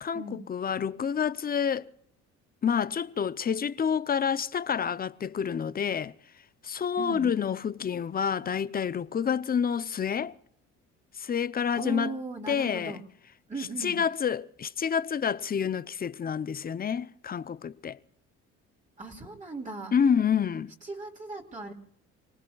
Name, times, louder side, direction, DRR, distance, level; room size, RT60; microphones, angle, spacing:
voice 1, 0.0-1.9 2.6-6.1 6.6-10.3 11.2-12.1 12.5-13.0 13.8-18.0 19.9-20.7, left 7 dB, 30° left, 0.6 m, -28 dB
voice 2, 7.0-7.3 11.7-13.0 13.5-14.0 19.0-20.2 20.8-21.7, right 3 dB, 25° right, 2.6 m, -38 dB
29.5 x 19.0 x 2.4 m
cardioid pair, 95°, 30 cm